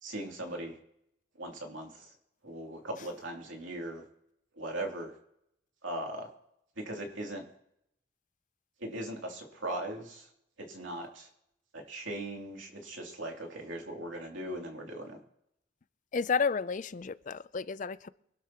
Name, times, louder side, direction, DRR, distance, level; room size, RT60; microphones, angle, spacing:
voice 1, 0.0-0.8 1.4-2.1 2.4-4.0 4.6-5.1 5.8-6.3 6.8-7.4 8.8-10.3 10.7-11.3 11.7-15.2, right 1 dB, 90° right, 2.9 m, -39 dB
voice 2, 16.1-18.1, left 5 dB, 40° left, 0.4 m, -31 dB
24.5 x 12.0 x 3.0 m
head